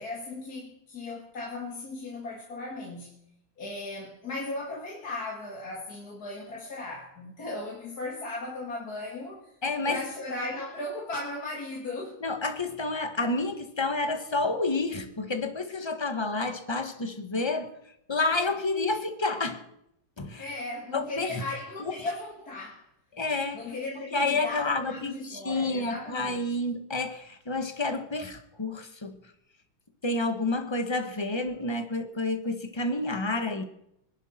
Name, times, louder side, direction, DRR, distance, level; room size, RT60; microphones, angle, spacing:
voice 1, 0.0-3.2 3.6-9.5 9.8-12.2 20.4-22.9 23.5-26.5, left 2 dB, 45° left, 2.6 m, -37 dB
voice 2, 9.6-10.0 12.2-17.8 18.1-19.6 20.2-20.5 20.9-21.3 23.1-23.7 24.1-29.2 30.0-33.6, left 2 dB, 15° left, 1.0 m, -29 dB
25.0 x 11.5 x 4.4 m
omnidirectional pair, 2.4 m